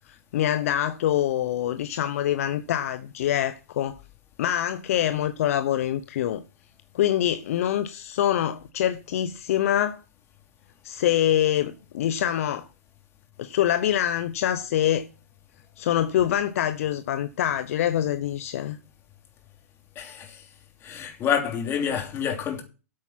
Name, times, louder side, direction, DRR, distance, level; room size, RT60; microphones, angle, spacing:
voice 1, 0.1-4.0 4.4-6.4 6.9-10.0 10.8-12.6 13.4-15.1 15.8-18.8, left 11 dB, 60° left, 0.8 m, -25 dB
voice 2, 19.9-20.4 20.8-22.6, left 8 dB, 30° left, 3.1 m, -28 dB
8.7 x 8.6 x 5.9 m
hypercardioid pair, 120°, 8 cm